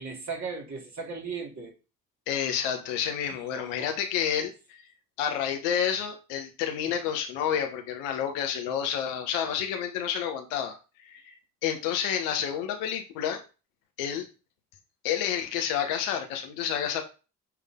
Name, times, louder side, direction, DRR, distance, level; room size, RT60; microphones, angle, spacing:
voice 1, 0.0-1.8 3.3-3.9, right 5 dB, 40° right, 3.5 m, -37 dB
voice 2, 2.3-4.8 5.2-13.4 14.0-14.3 15.0-17.0, left 8 dB, 80° left, 1.3 m, -29 dB
8.9 x 3.7 x 3.8 m
hypercardioid pair, 50°, 42 cm